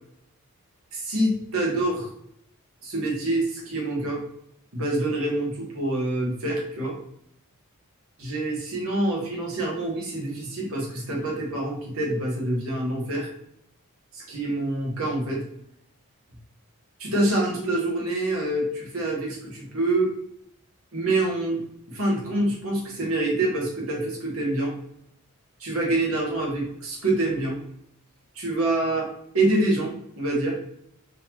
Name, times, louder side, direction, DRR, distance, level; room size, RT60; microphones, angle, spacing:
voice 1, 0.9-2.1 2.8-4.2 4.7-7.0 8.2-13.3 14.1-15.4 17.0-20.1 20.9-21.6 21.9-24.7 25.6-27.6 28.3-29.1 29.3-30.6, right 2 dB, 65° right, -3 dB, 1.3 m, -26 dB
4.0 x 2.7 x 2.9 m, 0.73 s
head